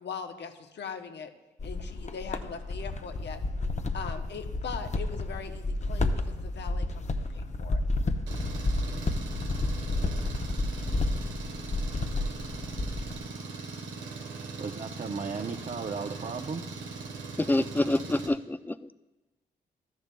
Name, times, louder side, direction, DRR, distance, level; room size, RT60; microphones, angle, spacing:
voice 1, 0.0-1.3 1.6-3.4 3.9-7.8, left 6 dB, 65° left, 6 dB, 1.0 m, -40 dB
sound 1, 1.6-13.2, left 2 dB, 35° left, 0.8 m, -31 dB
Engine, 8.3-18.3, right 3 dB, 85° right, 1.3 m, -40 dB
voice 2, 14.6-16.8, right 5 dB, 40° right, 4 dB, 0.7 m, -35 dB
voice 3, 17.4-18.9, left 1 dB, 10° left, 14 dB, 0.4 m, -27 dB
13.0 x 10.5 x 2.3 m, 1.1 s
supercardioid pair, 45°, 19 cm